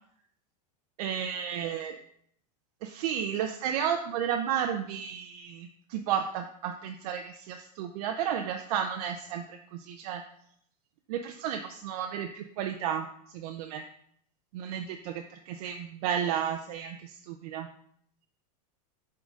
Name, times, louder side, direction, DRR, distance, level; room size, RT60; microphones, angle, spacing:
voice 1, 1.0-2.0 2.8-10.2 11.1-13.1 13.3-13.8 14.5-17.7, right 8 dB, 65° right, 5 dB, 0.5 m, -32 dB
7.2 x 3.8 x 3.7 m, 0.68 s
supercardioid pair, 135°, 21 cm